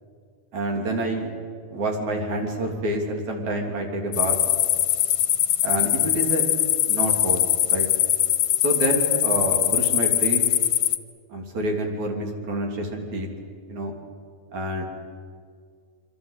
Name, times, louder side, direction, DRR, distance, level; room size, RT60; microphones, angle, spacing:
voice 1, 0.5-1.3 1.7-4.4 5.6-6.5 6.9-7.4 7.7-7.9 8.6-10.4 11.3-13.3 13.7-13.9 14.5-14.8, right 1 dB, 50° right, 1 dB, 4.2 m, -27 dB
sound 1, 4.1-11.0, left 13 dB, 75° left, 2.4 m, -22 dB
26.5 x 25.5 x 8.2 m, 2.1 s
omnidirectional pair, 4.3 m